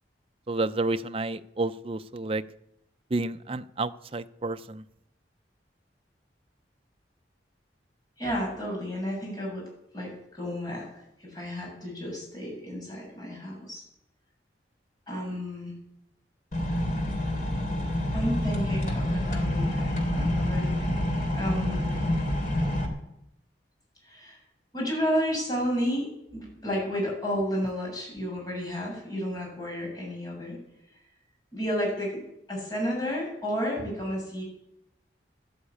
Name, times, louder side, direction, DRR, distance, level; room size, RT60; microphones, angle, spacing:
voice 1, 0.5-2.4 3.1-4.8, right 2 dB, 30° right, 10 dB, 0.5 m, -30 dB
voice 2, 8.2-9.7 9.9-10.9 11.2-13.8 15.1-15.8 18.1-21.0 21.3-21.9 24.0-24.4 24.7-30.6 31.5-32.2 32.5-34.4, equal, 20° left, -2 dB, 7.5 m, -32 dB
sound 1, 16.5-22.9, left 1 dB, 45° left, 3.4 m, -27 dB
13.0 x 11.5 x 8.6 m, 0.82 s
head